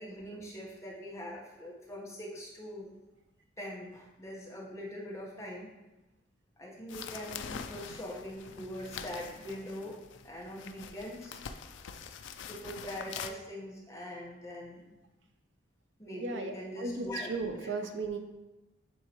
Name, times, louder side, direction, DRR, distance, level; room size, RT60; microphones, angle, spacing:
voice 1, 0.0-2.9 3.6-5.7 6.6-10.0 10.2-11.4 12.4-15.0 16.0-17.3, equal, 15° left, -4 dB, 1.1 m, -42 dB
sound 1, 6.9-13.3, left 7 dB, 75° left, 0.4 m, -44 dB
voice 2, 16.1-18.2, right 3 dB, 70° right, 5 dB, 0.6 m, -36 dB
9.1 x 3.7 x 3.0 m, 1.0 s
head